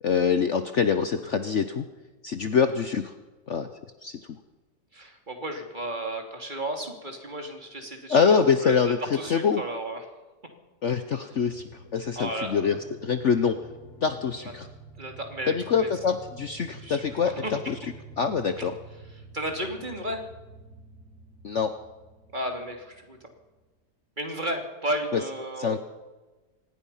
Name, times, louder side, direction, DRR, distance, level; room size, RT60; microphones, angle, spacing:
voice 1, 0.0-1.8 2.2-3.1 3.5-3.7 4.0-4.2 8.1-9.0 9.3-9.6 10.8-11.6 11.9-12.8 13.0-13.5 14.0-14.7 15.5-17.7 18.2-18.7 21.4-21.7 25.1-25.2 25.6-25.8, left 6 dB, 50° left, 9 dB, 1.1 m, -24 dB
voice 2, 4.9-8.4 8.6-10.0 12.2-12.8 14.4-14.5 15.0-15.9 16.8-17.5 18.2-18.3 18.6-18.7 19.3-20.2 22.3-23.2 24.2-25.8, right 1 dB, 30° right, 3 dB, 2.9 m, -33 dB
sound 1, 11.3-23.5, right 3 dB, 70° right, 8.8 m, -48 dB
24.5 x 19.5 x 5.7 m, 1.2 s
omnidirectional pair, 1.7 m